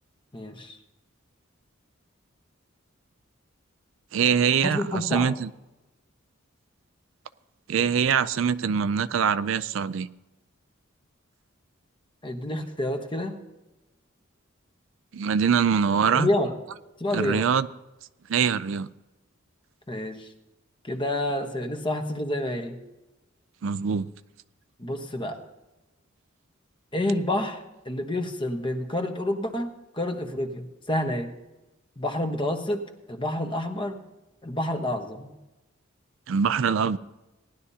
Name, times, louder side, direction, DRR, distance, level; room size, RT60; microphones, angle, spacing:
voice 1, 0.3-0.8 4.6-5.3 12.2-13.4 16.1-16.5 17.0-17.5 19.9-20.3 20.8-22.8 24.8-25.4 26.9-31.3 32.0-32.8 33.1-34.0 34.4-35.3, left 1 dB, 25° left, 5 dB, 1.1 m, -28 dB
voice 2, 4.1-5.5 7.7-10.1 15.1-16.3 17.1-17.7 18.3-18.9 23.6-24.1 36.3-37.0, right 7 dB, 65° right, 14 dB, 0.4 m, -23 dB
18.5 x 11.0 x 2.8 m, 1.0 s
head